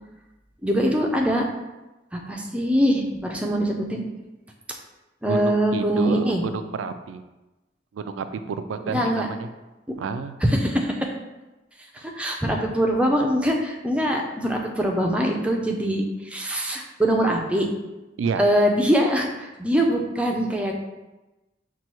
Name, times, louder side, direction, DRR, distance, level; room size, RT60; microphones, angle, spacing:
voice 1, 0.6-1.5 2.1-4.0 5.2-6.4 8.9-9.3 10.4-11.1 11.9-17.7 18.4-20.7, equal, 5° right, 1 dB, 0.4 m, -23 dB
voice 2, 5.3-7.2 7.9-9.5 10.0-10.3 12.4-12.5 18.2-18.4, right 5 dB, 85° right, 9 dB, 0.3 m, -30 dB
5.4 x 2.2 x 3.0 m, 1.1 s
head